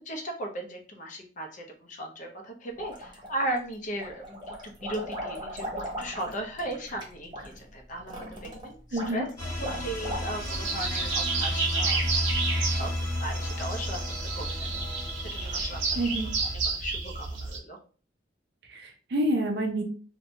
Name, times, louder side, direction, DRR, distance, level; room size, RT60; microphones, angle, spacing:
voice 1, 0.1-5.7 6.0-12.0 12.6-14.0 14.3-14.7 14.9-16.1 16.6-17.8, right 1 dB, 40° left, 2 dB, 0.6 m, -37 dB
sound 1, 2.8-3.6 3.9-10.7, equal, 25° right, 0.7 m, -38 dB
voice 2, 8.9-9.3 16.0-16.3 18.7-19.8, right 1 dB, 60° right, 3 dB, 0.5 m, -28 dB
sound 2, 9.4-16.5, left 1 dB, 20° left, 0.9 m, -33 dB
sound 3, 10.4-17.6, right 4 dB, 90° right, 0.9 m, -31 dB
2.7 x 2.1 x 2.7 m, 0.40 s
head